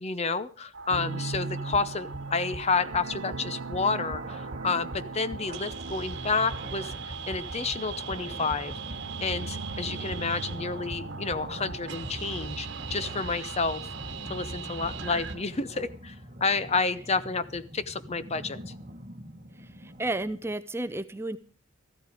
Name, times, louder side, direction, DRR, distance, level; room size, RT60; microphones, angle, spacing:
voice 1, 0.0-8.7 9.2-13.8 14.3-16.2 16.4-18.7, left 4 dB, 30° left, 14 dB, 0.7 m, -30 dB
sound 1, 0.7-15.4, right 4 dB, 55° right, 1.6 m, -39 dB
sound 2, 0.9-14.2 14.5-14.6 15.0-15.1, right 4 dB, 75° right, 0.6 m, -41 dB
sound 3, 1.4-20.6, right 1 dB, 30° right, 1.6 m, -44 dB
voice 2, 19.8-21.4, right 2 dB, 10° right, 10 dB, 0.6 m, -32 dB
14.5 x 13.0 x 4.9 m, 0.39 s
head